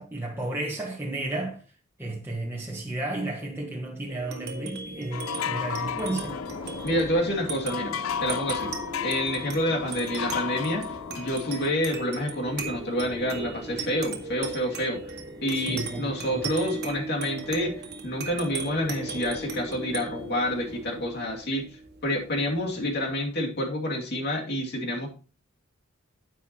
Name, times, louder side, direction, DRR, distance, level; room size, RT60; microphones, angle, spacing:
voice 1, 0.0-1.6 2.0-6.4 15.5-16.5, right 2 dB, 10° right, 1.5 m, -33 dB
sound 1, 4.1-22.9, right 4 dB, 55° right, 1.8 m, -38 dB
sound 2, 5.1-11.7, left 7 dB, 85° left, 0.5 m, -33 dB
sound 3, 5.8-21.0, equal, 10° left, 1.2 m, -46 dB
voice 2, 6.8-8.8 9.0-15.1 15.4-21.6 22.0-25.1, equal, 55° left, 2.6 m, -28 dB
10.5 x 9.4 x 3.0 m
head